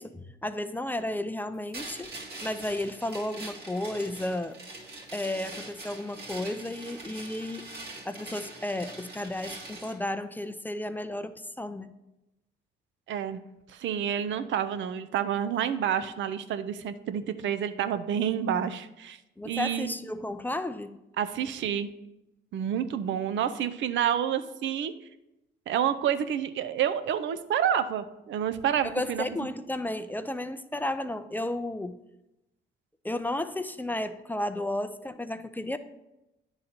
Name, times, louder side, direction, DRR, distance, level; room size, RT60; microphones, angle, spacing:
voice 1, 0.0-2.1 2.4-4.6 5.1-7.7 8.1-11.9 19.4-21.0 28.8-32.0 33.0-35.8, left 1 dB, 10° left, 10 dB, 0.4 m, -33 dB
sound 1, 1.7-10.0, right 2 dB, 50° right, 2.2 m, -43 dB
voice 2, 13.1-13.4 13.7-19.2 19.5-19.9 21.2-21.9 22.5-24.9 25.7-29.3, right 9 dB, 70° right, 12 dB, 0.5 m, -29 dB
9.7 x 3.9 x 4.3 m, 0.93 s
cardioid pair, 90°, 20 cm